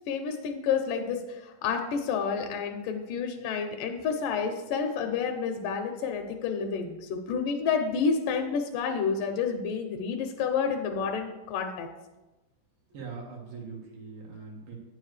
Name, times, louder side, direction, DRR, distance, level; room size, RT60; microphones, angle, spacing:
voice 1, 0.1-11.9, left 6 dB, 80° left, 5 dB, 2.2 m, -29 dB
voice 2, 12.9-14.8, right 4 dB, 85° right, -1 dB, 3.2 m, -41 dB
9.2 x 7.2 x 3.2 m, 1.1 s
omnidirectional pair, 3.8 m